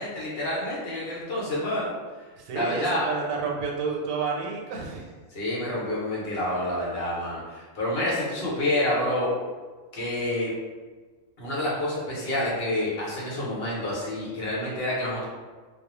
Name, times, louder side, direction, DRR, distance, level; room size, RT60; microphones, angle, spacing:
voice 1, 0.0-1.9 2.5-3.0 5.3-9.3 9.9-10.5 11.4-15.2, left 1 dB, 55° left, -6 dB, 0.9 m, -28 dB
voice 2, 2.4-5.1, right 5 dB, 90° right, 0 dB, 1.0 m, -30 dB
2.3 x 2.1 x 2.9 m, 1.4 s
omnidirectional pair, 1.3 m